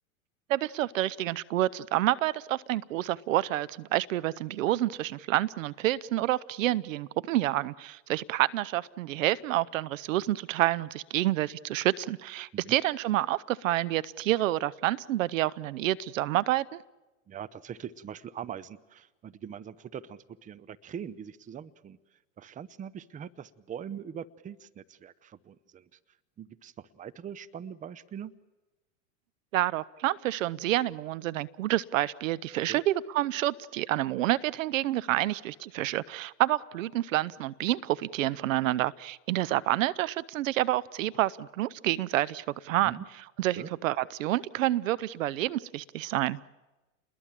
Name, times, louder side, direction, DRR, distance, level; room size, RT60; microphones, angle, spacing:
voice 1, 0.5-16.8 29.5-43.0 43.4-46.4, right 15 dB, 70° right, 20 dB, 0.8 m, -28 dB
voice 2, 17.3-22.0 22.4-26.0 26.4-28.3 32.7-32.8 42.8-43.1 43.6-43.7, right 8 dB, 20° right, 18 dB, 0.8 m, -42 dB
29.5 x 21.0 x 7.5 m, 1.1 s
hypercardioid pair, 105°, 41 cm